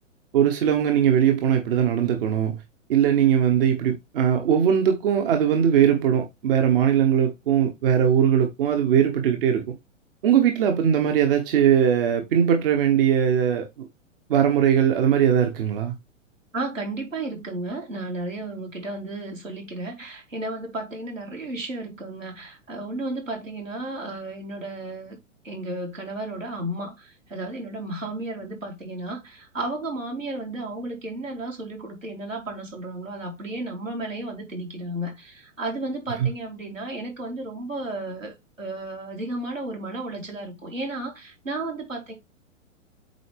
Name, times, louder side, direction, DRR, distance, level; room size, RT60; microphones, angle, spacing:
voice 1, 0.3-2.6 2.9-9.6 10.2-13.9 14.3-15.9, right 9 dB, 45° right, 1.1 m, -20 dB
voice 2, 16.5-25.2 25.4-42.1, right 2 dB, 80° right, 3.4 m, -33 dB
8.1 x 4.2 x 3.4 m
figure-of-eight pair, 105°, 38 cm